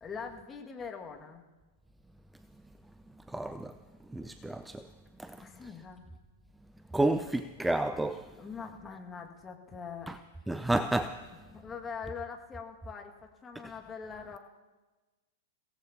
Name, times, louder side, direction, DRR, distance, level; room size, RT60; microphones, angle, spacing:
voice 1, 0.0-1.5 5.4-6.0 8.4-10.2 11.5-13.1 13.4-14.4, left 6 dB, 15° left, 2.0 m, -42 dB
voice 2, 3.3-3.7 4.1-4.9 5.2-5.4 6.9-8.3 10.1-10.2 10.5-11.2 13.6-13.7, right 2 dB, 5° right, 0.5 m, -30 dB
29.5 x 17.0 x 2.9 m
figure-of-eight pair, 100°, 0 cm